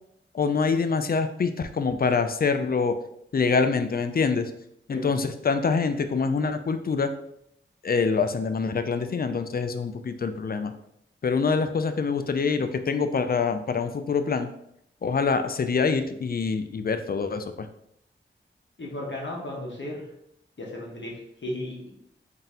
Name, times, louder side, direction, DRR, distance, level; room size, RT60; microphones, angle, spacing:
voice 1, 0.3-3.0 3.3-4.5 4.9-7.1 7.8-10.7 11.2-14.5 15.0-17.7, left 5 dB, 45° left, 9 dB, 0.4 m, -25 dB
voice 2, 18.8-20.0 20.6-21.1 21.4-21.8, left 1 dB, 65° left, -3 dB, 1.2 m, -34 dB
3.9 x 2.7 x 3.7 m, 0.76 s
wide cardioid pair, 55°, 21 cm